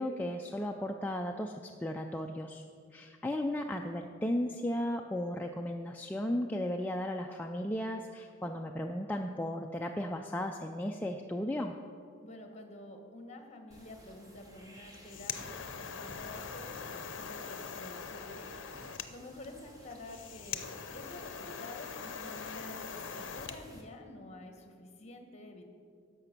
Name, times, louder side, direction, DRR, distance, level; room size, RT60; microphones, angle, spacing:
voice 1, 0.0-2.6 2.9-11.7, left 1 dB, 10° left, 2 dB, 0.3 m, -35 dB
voice 2, 12.2-18.5 19.1-20.6 20.9-25.6, left 1 dB, 35° left, 4 dB, 1.2 m, -49 dB
sound 1, 13.7-23.8, equal, 20° right, 1.2 m, -54 dB
sound 2, 14.8-23.6, left 6 dB, 65° left, 0.6 m, -42 dB
11.0 x 6.7 x 5.9 m, 2.2 s
head